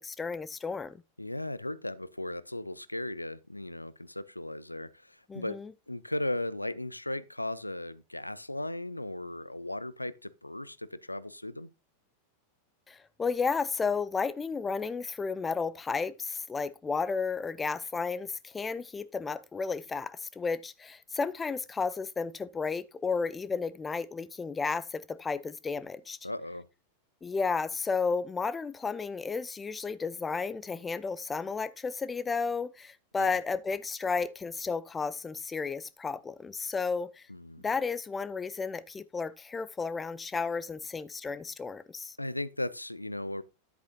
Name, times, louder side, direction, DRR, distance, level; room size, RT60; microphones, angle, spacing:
voice 1, 0.0-1.0 5.3-5.7 12.9-26.2 27.2-37.3 37.6-42.2, left 5 dB, 15° left, 0.6 m, -33 dB
voice 2, 1.2-5.6 5.9-11.7 26.2-26.7 33.2-33.4 37.3-37.6 42.2-43.4, left 1 dB, 85° left, 0.5 m, -36 dB
10.5 x 8.1 x 2.8 m
figure-of-eight pair, 90°, 0 cm